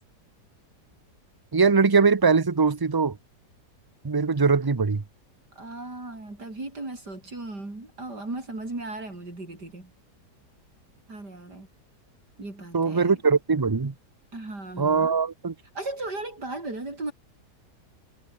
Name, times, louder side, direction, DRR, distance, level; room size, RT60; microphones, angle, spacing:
voice 1, 1.5-3.2 4.0-5.0 12.7-13.9 14.8-15.5, right 5 dB, 25° right, 0.5 m, -21 dB
voice 2, 5.6-9.9 11.1-11.7 12.4-13.2 14.3-15.1 15.8-17.1, right 2 dB, 80° right, 7.4 m, -36 dB
omnidirectional pair, 1.7 m